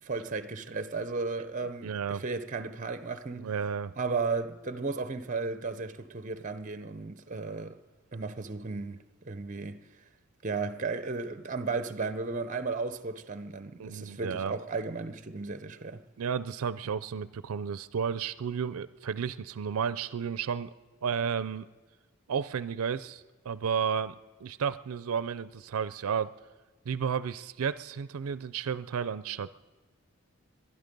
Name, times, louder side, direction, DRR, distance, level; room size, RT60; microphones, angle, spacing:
voice 1, 0.0-3.5 4.0-7.8 8.1-9.8 10.4-16.0, right 4 dB, 35° right, 0.6 m, -34 dB
voice 2, 1.8-2.2 3.4-3.9 13.8-14.5 16.2-20.7 21.0-21.7 22.3-24.1 24.4-26.3 26.9-29.5, right 7 dB, 85° right, 0.4 m, -32 dB
23.0 x 11.0 x 5.3 m
head